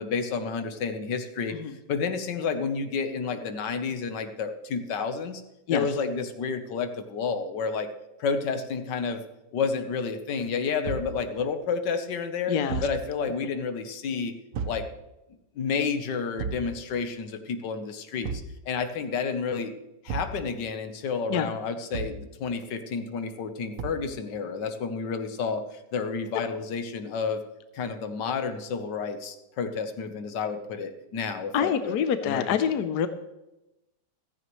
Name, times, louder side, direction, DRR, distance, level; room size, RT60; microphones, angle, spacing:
voice 1, 0.0-1.6 1.9-5.4 5.7-7.9 8.2-9.2 9.5-12.6 12.8-14.3 14.6-14.8 15.6-19.7 20.0-27.4 27.7-32.0 32.2-32.6, left 5 dB, 90° left, 8 dB, 1.7 m, -30 dB
Thump thud, 10.8-11.2 12.7-13.0 14.5-14.9 16.4-16.7 18.2-18.6 20.1-20.4 21.9-22.3 23.8-24.1, right 5 dB, 55° right, 1.1 m, -33 dB
voice 2, 12.5-12.9 21.3-21.5 26.3-26.4 31.5-33.1, left 8 dB, 75° left, 10 dB, 1.3 m, -26 dB
15.5 x 14.0 x 3.1 m, 0.95 s
omnidirectional pair, 1.8 m